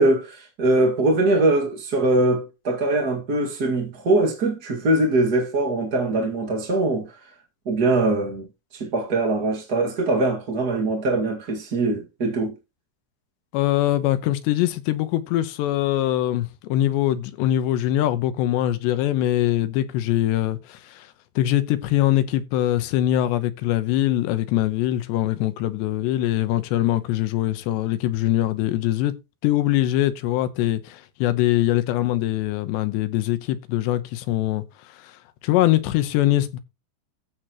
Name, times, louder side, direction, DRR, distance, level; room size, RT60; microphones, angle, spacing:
voice 1, 0.0-7.1 7.6-8.5 8.7-12.5, right 2 dB, 50° right, 1.1 m, -22 dB
voice 2, 13.5-21.1 21.4-29.1 29.4-34.6 35.0-35.1 35.4-36.6, left 14 dB, 90° left, 3.1 m, -22 dB
15.0 x 6.5 x 2.9 m
omnidirectional pair, 4.9 m